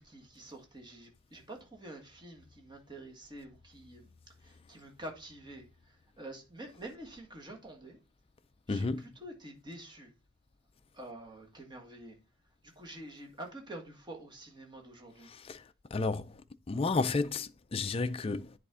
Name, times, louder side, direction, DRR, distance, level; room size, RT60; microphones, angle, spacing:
voice 1, 0.0-4.1 4.4-8.0 8.7-10.1 10.9-12.1 12.7-15.3, right 1 dB, 20° right, 1.7 m, -47 dB
voice 2, 8.7-9.0 15.3-15.6 15.9-16.4 16.7-18.5, left 3 dB, 25° left, 0.4 m, -32 dB
9.8 x 4.1 x 3.7 m
head